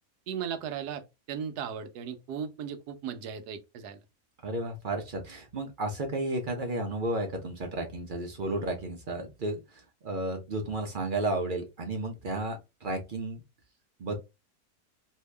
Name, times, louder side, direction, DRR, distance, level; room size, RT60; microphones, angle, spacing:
voice 1, 0.3-1.0 1.3-4.0, right 7 dB, 90° right, 1.2 m, -36 dB
voice 2, 4.4-13.4 14.0-14.2, right 2 dB, 50° right, 0.6 m, -33 dB
2.8 x 2.7 x 3.2 m
omnidirectional pair, 1.7 m